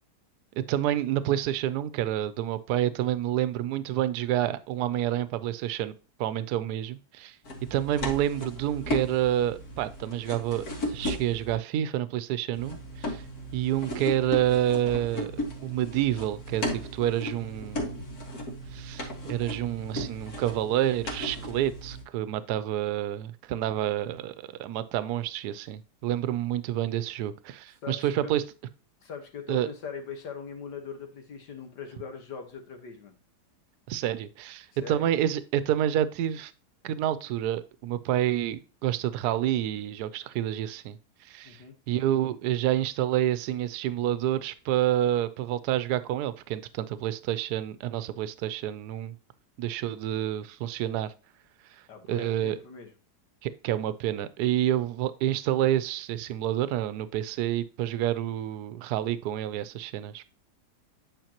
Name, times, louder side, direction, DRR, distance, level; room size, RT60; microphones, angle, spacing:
voice 1, 0.6-5.9 6.2-7.4 7.7-13.2 13.5-15.3 15.6-17.9 18.7-24.3 24.6-28.4 29.5-29.7 33.9-36.5 36.8-41.0 41.2-49.2 49.6-51.1 52.1-52.6 53.4-60.3, right 12 dB, 75° right, 1.1 m, -28 dB
sound 1, 7.4-11.6 12.5-22.0, equal, 65° left, 2.2 m, -36 dB
voice 2, 21.3-21.7 27.8-28.3 29.0-33.1 34.8-35.1 41.4-41.7 51.9-52.9, left 6 dB, 85° left, 2.0 m, -41 dB
9.0 x 5.1 x 2.9 m
omnidirectional pair, 1.8 m